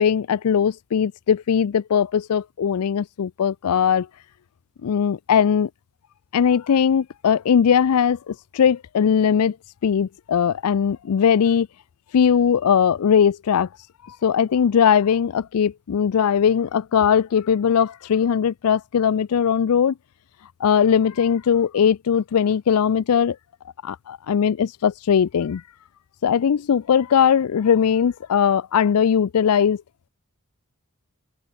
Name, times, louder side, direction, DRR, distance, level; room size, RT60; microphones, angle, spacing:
voice 1, 0.0-4.1 4.8-5.7 6.3-9.6 9.8-11.7 12.1-13.7 14.1-19.9 20.6-23.4 23.8-25.6 26.2-29.8, left 7 dB, 90° left, 0.4 m, -19 dB
open air
head